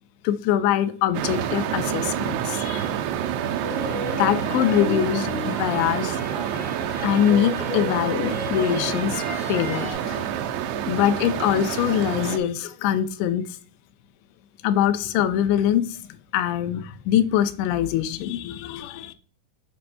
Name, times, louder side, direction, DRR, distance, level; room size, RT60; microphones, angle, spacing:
voice 1, 0.2-2.9 4.2-6.2 7.0-9.2 9.5-10.3 10.9-13.4 14.6-15.8 16.3-19.1, left 10 dB, 90° left, 11 dB, 2.8 m, -23 dB
sound 1, 1.1-12.4, right 9 dB, 85° right, 2.8 m, -28 dB
sound 2, 3.6-9.9, left 2 dB, 65° left, 1.2 m, -34 dB
11.0 x 4.2 x 2.2 m, 0.44 s
omnidirectional pair, 4.9 m